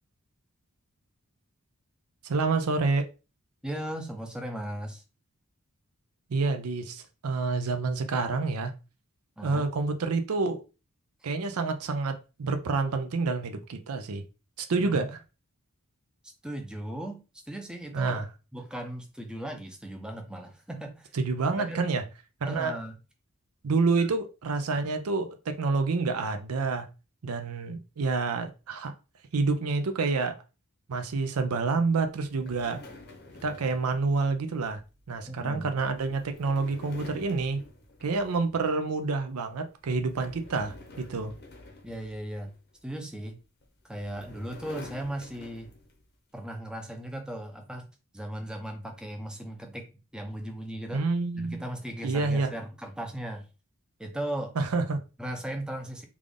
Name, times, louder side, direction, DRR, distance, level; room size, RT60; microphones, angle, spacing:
voice 1, 2.2-3.1 6.3-8.7 9.4-10.6 11.2-14.2 14.6-15.2 17.9-18.3 21.1-22.0 22.4-22.8 23.6-26.9 27.2-28.9 29.3-30.4 30.9-32.8 33.4-34.8 35.1-37.6 38.0-41.3 50.9-51.6 52.0-52.5 54.6-55.0, right 4 dB, 70° right, 0.5 m, -28 dB
voice 2, 3.6-5.0 9.4-9.7 14.8-15.1 16.4-17.2 17.5-18.2 18.5-21.1 21.5-21.9 22.4-22.9 24.0-24.1 35.3-35.8 41.8-42.5 42.8-43.4 43.8-45.7 46.3-47.9 48.1-49.9 50.1-51.1 51.4-53.5 54.0-54.5 55.2-56.1, right 1 dB, 5° right, 0.5 m, -37 dB
sound 1, 32.2-38.7 39.1-39.4 39.8-42.8 43.6-46.1, left 2 dB, 50° left, 0.8 m, -49 dB
3.4 x 2.5 x 3.5 m
head